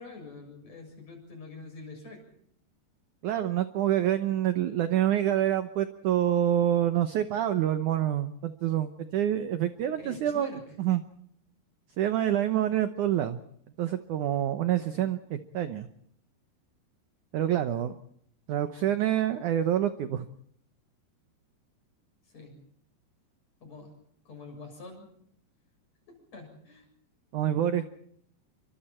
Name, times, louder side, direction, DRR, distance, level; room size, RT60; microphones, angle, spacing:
voice 1, 0.0-2.2 10.0-10.6 14.7-15.0 22.3-22.6 23.6-23.9 24.3-25.1 26.3-26.9, left 3 dB, 40° left, 3 dB, 8.1 m, -45 dB
voice 2, 3.2-11.0 12.0-13.4 13.8-15.9 17.3-18.0 18.5-20.3 27.3-27.9, right 11 dB, 75° right, 10 dB, 1.9 m, -27 dB
28.0 x 24.5 x 4.4 m, 0.67 s
omnidirectional pair, 4.8 m